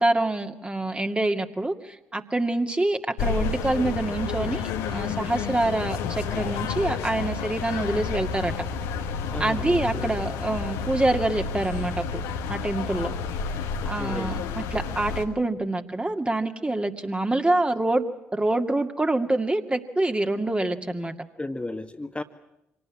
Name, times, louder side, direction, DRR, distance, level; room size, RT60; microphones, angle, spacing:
voice 1, 0.0-8.5 9.4-12.2 12.5-13.1 13.9-18.0 18.3-21.1, right 2 dB, 20° right, 5 dB, 2.3 m, -26 dB
sound 1, 3.2-15.2, left 5 dB, 75° left, 1.6 m, -30 dB
voice 2, 9.3-10.1 13.8-14.3 21.4-22.2, left 2 dB, 20° left, 5 dB, 1.7 m, -34 dB
25.5 x 18.5 x 9.9 m, 0.91 s
hypercardioid pair, 45°, 6 cm